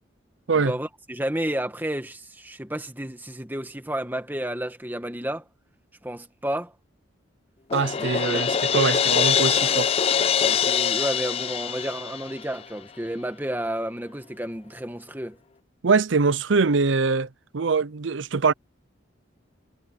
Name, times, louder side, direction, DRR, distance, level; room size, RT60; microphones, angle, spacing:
voice 1, 0.6-5.4 6.0-6.7 8.0-8.4 10.4-15.4, right 1 dB, 10° right, 1.8 m, -31 dB
Crash cymbal, 7.7-12.6, left 8 dB, 30° left, 0.3 m, -23 dB
voice 2, 7.7-9.9 15.8-18.5, right 4 dB, 80° right, 0.6 m, -23 dB
head